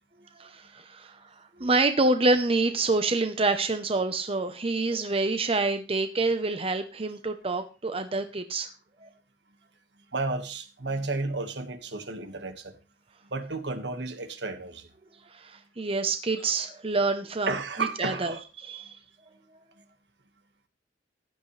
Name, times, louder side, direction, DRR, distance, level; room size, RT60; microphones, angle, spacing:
voice 1, 0.4-1.2 1.6-8.7 9.0-9.1 15.3-19.0, right 3 dB, 35° right, 0.9 m, -27 dB
voice 2, 10.1-12.7 13.3-14.9 17.5-18.4, right 3 dB, 70° right, 1.7 m, -32 dB
15.0 x 11.0 x 3.3 m
head